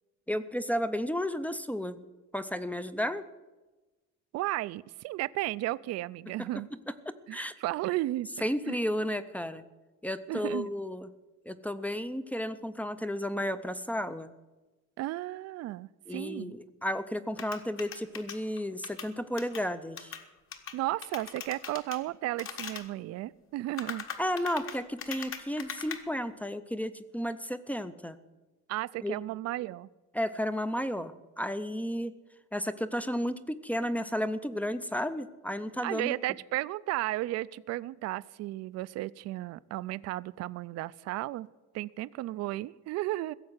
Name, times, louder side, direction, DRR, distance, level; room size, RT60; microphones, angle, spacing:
voice 1, 0.3-2.0 2.3-3.3 6.7-7.5 8.4-9.6 10.0-11.1 11.5-14.3 16.1-20.2 24.2-28.2 29.0-29.1 30.1-32.1 32.5-36.2, equal, 5° left, 13 dB, 0.4 m, -33 dB
voice 2, 4.3-6.7 7.3-8.3 8.7-8.8 10.3-10.7 15.0-16.5 20.7-24.0 28.7-29.9 35.8-41.5 41.7-43.3, right 16 dB, 60° right, 18 dB, 0.4 m, -34 dB
sound 1, 17.4-19.6 20.0-20.2 20.5-20.7 21.0-22.0 22.4-22.9 23.6-26.0, left 7 dB, 45° left, 1.4 m, -40 dB
16.0 x 7.5 x 9.6 m, 1.1 s
cardioid pair, 170°, 29 cm